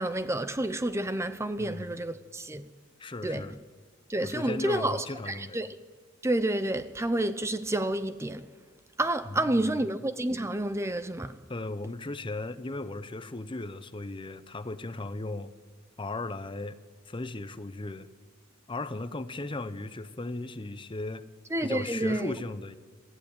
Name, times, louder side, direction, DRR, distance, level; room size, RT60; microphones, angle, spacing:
voice 1, 0.0-2.6 3.2-3.4 4.1-5.7 6.2-8.4 9.0-11.3 21.5-22.3, right 1 dB, 15° right, 0.6 m, -29 dB
voice 2, 1.6-2.0 3.0-3.6 4.2-5.6 9.3-9.8 11.5-15.5 16.0-16.8 17.1-18.1 18.7-21.2 21.6-22.8, left 2 dB, 25° left, 0.8 m, -36 dB
23.5 x 14.5 x 8.7 m
head